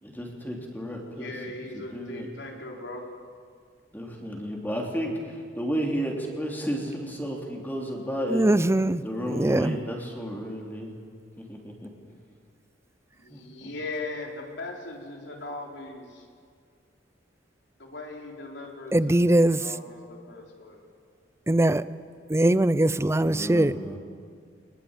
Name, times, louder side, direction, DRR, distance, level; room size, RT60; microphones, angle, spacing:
voice 1, 0.0-1.3 1.7-2.3 3.9-8.4 9.0-10.9 11.4-11.9 13.3-13.7 23.2-24.0, equal, 10° left, 0 dB, 3.3 m, -33 dB
voice 2, 1.2-3.0 13.1-16.3 17.8-20.8, left 2 dB, 70° left, 1 dB, 4.0 m, -39 dB
voice 3, 8.3-9.0 9.3-9.8 18.9-19.6 21.5-21.8 22.3-23.7, right 1 dB, 15° right, 16 dB, 0.6 m, -21 dB
23.5 x 20.5 x 9.0 m, 2.1 s
head